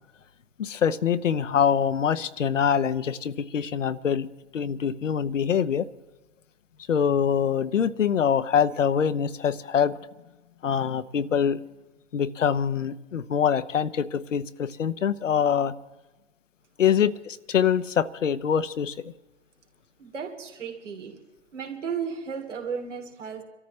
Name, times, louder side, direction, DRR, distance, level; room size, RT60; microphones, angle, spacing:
voice 1, 0.6-4.3 4.5-5.9 6.9-10.0 10.6-11.6 12.1-15.7 16.8-18.9, left 8 dB, 85° left, 13 dB, 0.9 m, -24 dB
voice 2, 20.0-21.2 21.5-23.4, right 6 dB, 75° right, 2 dB, 3.1 m, -34 dB
28.5 x 13.5 x 3.2 m, 1.1 s
hypercardioid pair, 120°, 37 cm